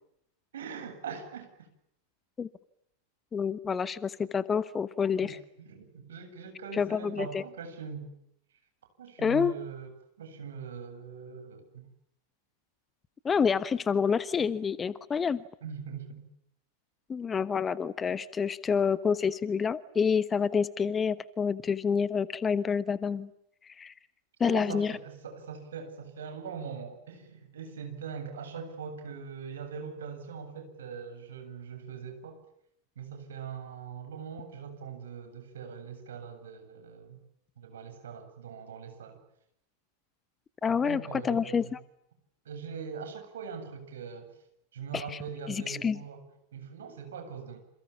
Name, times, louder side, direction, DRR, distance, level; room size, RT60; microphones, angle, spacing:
voice 1, 0.5-1.7 5.2-8.1 9.0-9.9 10.2-11.9 15.6-16.3 24.4-32.4 33.0-37.2 37.6-39.2 40.6-41.7 42.4-44.4 44.7-46.3 46.5-47.7, right 6 dB, 65° right, 7 dB, 7.8 m, -41 dB
voice 2, 3.3-5.4 6.7-7.4 9.2-9.5 13.2-15.4 17.1-23.3 23.7-23.9 24.4-24.9 40.6-41.6 44.9-45.0 45.7-46.0, left 6 dB, 20° left, 17 dB, 1.2 m, -28 dB
29.0 x 28.0 x 7.2 m, 0.76 s
figure-of-eight pair, 90°, 0 cm